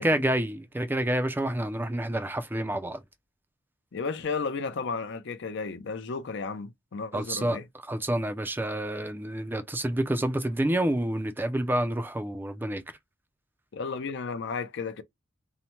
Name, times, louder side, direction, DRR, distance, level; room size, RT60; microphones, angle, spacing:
voice 1, 0.0-3.0 7.1-12.8, right 1 dB, 10° right, 0.4 m, -28 dB
voice 2, 3.9-7.6 13.7-15.0, left 4 dB, 65° left, 0.5 m, -33 dB
2.7 x 2.1 x 3.0 m
head